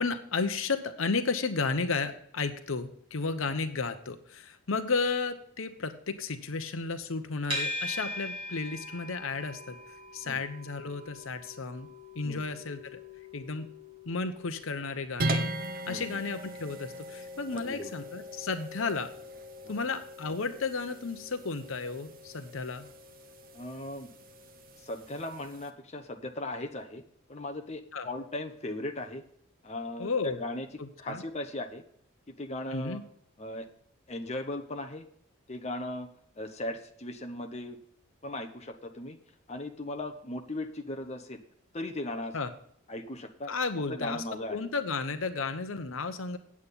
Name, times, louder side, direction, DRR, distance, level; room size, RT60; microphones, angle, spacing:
voice 1, 0.0-9.8 10.1-11.9 12.1-13.0 13.3-13.7 14.1-15.5 15.9-19.1 19.7-22.9 27.9-28.1 30.0-30.4 30.8-31.2 32.7-33.0 42.3-42.5 43.5-44.2 44.5-46.4, left 4 dB, 65° left, 9 dB, 0.9 m, -33 dB
sound 1, 7.5-24.7, left 1 dB, 25° right, 3.9 m, -44 dB
sound 2, 15.2-25.7, right 1 dB, 45° right, 1.1 m, -39 dB
voice 2, 17.5-17.9 19.6-19.8 23.5-24.1 24.8-27.0 27.3-29.2 29.6-30.7 31.0-31.8 32.3-33.0 33.4-33.7 34.1-35.1 35.5-36.1 36.4-37.8 38.2-39.2 39.5-41.4 41.7-42.3 42.9-43.5 43.9-44.7, left 1 dB, 30° left, 5 dB, 0.9 m, -37 dB
8.8 x 8.4 x 5.6 m, 0.66 s
head